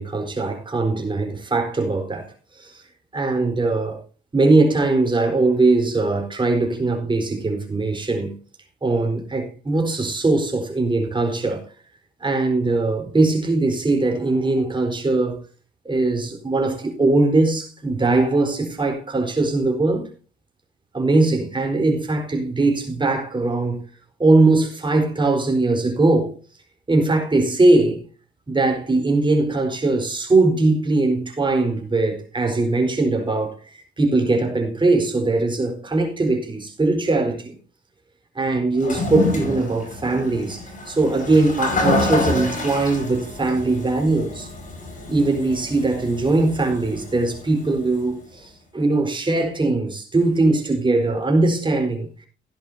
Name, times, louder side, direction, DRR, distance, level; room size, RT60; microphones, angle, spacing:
voice 1, 0.0-2.7 3.1-4.0 4.3-8.3 8.8-11.6 12.2-15.4 15.8-20.1 20.9-23.8 24.2-26.3 26.9-28.0 28.5-37.5 38.3-44.5 45.1-52.1, right 2 dB, 25° right, 4.4 m, -20 dB
Toilet flush, 38.7-48.0, left 2 dB, 40° left, 5.4 m, -28 dB
17.0 x 11.0 x 2.8 m
cardioid pair, 90°, 20 cm